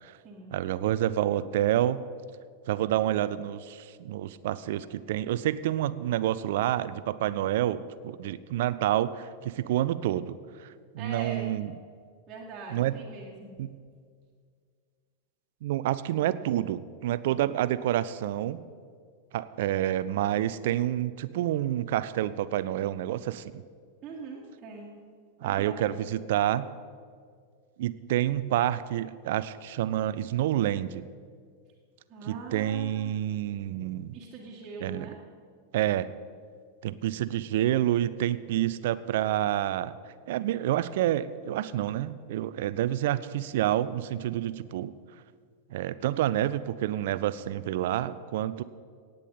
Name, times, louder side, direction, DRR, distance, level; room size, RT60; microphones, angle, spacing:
voice 1, 0.5-2.0 2.7-10.3 10.6-10.7 10.9-11.7 12.7-13.0 13.6-13.8 15.6-18.6 19.3-23.5 25.4-26.7 27.8-31.0 32.3-34.2 34.8-35.1 35.7-36.1 36.8-39.9 40.3-44.9 45.7-48.6, right 12 dB, 55° right, 16 dB, 0.5 m, -28 dB
voice 2, 11.0-11.5 12.3-13.6 24.0-24.9 25.4-25.9 32.1-33.2 34.1-35.2, right 4 dB, 25° right, -5 dB, 1.9 m, -42 dB
18.0 x 8.3 x 5.6 m, 2.1 s
figure-of-eight pair, 90°, 0 cm